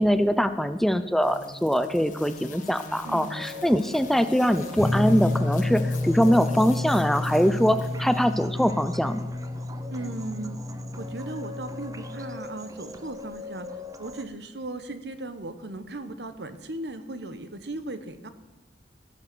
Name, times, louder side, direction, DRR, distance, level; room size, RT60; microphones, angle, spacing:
voice 1, 0.0-9.2, equal, ahead, 11 dB, 0.4 m, -23 dB
sound 1, 1.2-8.4, left 3 dB, 50° left, 1.1 m, -43 dB
sound 2, 3.0-14.3, left 2 dB, 20° right, 0.8 m, -42 dB
sound 3, 4.8-12.3, left 2 dB, 30° left, 2.2 m, -30 dB
voice 2, 9.9-10.6 11.0-13.7 14.0-18.3, right 2 dB, 70° right, 10 dB, 1.0 m, -37 dB
16.0 x 7.5 x 6.1 m, 1.1 s
head